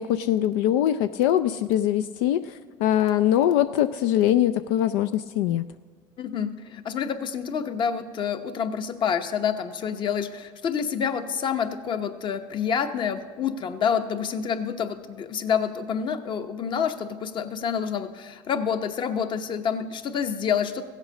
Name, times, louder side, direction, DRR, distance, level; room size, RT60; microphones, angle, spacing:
voice 1, 0.0-5.6, left 11 dB, 85° left, 10 dB, 0.4 m, -22 dB
voice 2, 6.2-20.8, left 7 dB, 40° left, 8 dB, 1.0 m, -28 dB
15.5 x 8.1 x 6.4 m, 1.5 s
supercardioid pair, 110°, 12 cm